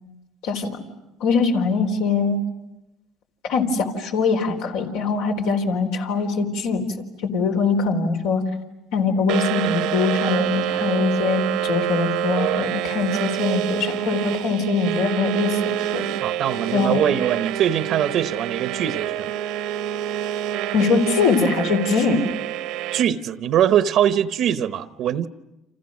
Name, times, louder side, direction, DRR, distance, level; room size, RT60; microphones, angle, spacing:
voice 1, 1.2-2.4 3.5-6.8 7.2-8.4 8.9-16.0 16.7-17.0 20.7-22.2, left 4 dB, 85° left, 3 dB, 4.0 m, -22 dB
sound 1, 9.3-23.0, right 12 dB, 80° right, 1.1 m, -27 dB
voice 2, 16.2-19.3 22.9-25.3, right 10 dB, 60° right, 11 dB, 0.9 m, -22 dB
30.0 x 27.5 x 6.4 m, 0.95 s
cardioid pair, 110°, 0 cm